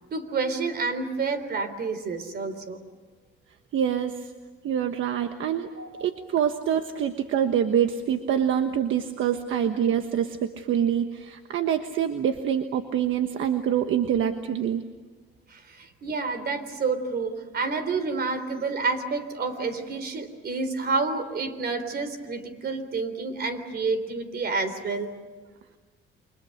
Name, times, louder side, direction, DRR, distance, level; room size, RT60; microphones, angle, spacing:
voice 1, 0.1-2.8 5.8-6.1 15.5-25.1, right 4 dB, 50° right, 10 dB, 3.7 m, -29 dB
voice 2, 3.7-4.3 4.6-5.7 6.0-14.8, right 9 dB, 70° right, 7 dB, 1.3 m, -25 dB
29.0 x 25.0 x 6.6 m, 1.4 s
cardioid pair, 120°, 21 cm